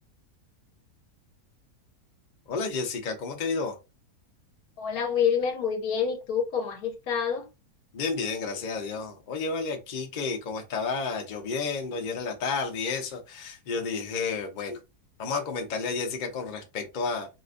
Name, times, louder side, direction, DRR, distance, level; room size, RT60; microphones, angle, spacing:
voice 1, 2.5-3.8 7.9-14.8 15.2-17.3, left 4 dB, 45° left, 0.6 m, -31 dB
voice 2, 4.8-7.5, left 7 dB, 70° left, 1.2 m, -27 dB
4.1 x 2.2 x 2.5 m
omnidirectional pair, 1.7 m